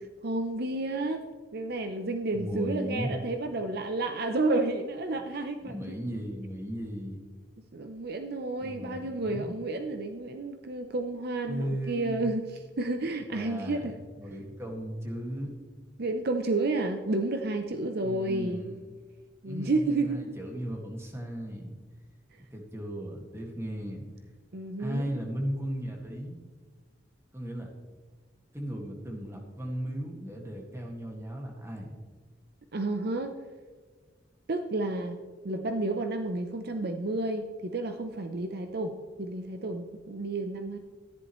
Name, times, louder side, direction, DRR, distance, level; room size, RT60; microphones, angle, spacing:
voice 1, 0.2-1.3 1.5-5.8 7.7-12.4 12.8-13.9 16.0-18.6 19.4-20.2 24.5-25.2 32.7-33.3 34.5-35.2 35.4-40.8, right 2 dB, 60° right, 7 dB, 0.7 m, -31 dB
voice 2, 2.3-3.1 5.1-5.3 5.6-7.2 8.6-9.6 11.5-12.3 13.3-15.5 18.0-18.9 19.4-21.7 22.5-24.0 24.8-26.4 27.3-27.7 28.5-31.9, equal, 15° right, 0 dB, 2.0 m, -36 dB
13.5 x 10.5 x 3.1 m, 1.4 s
head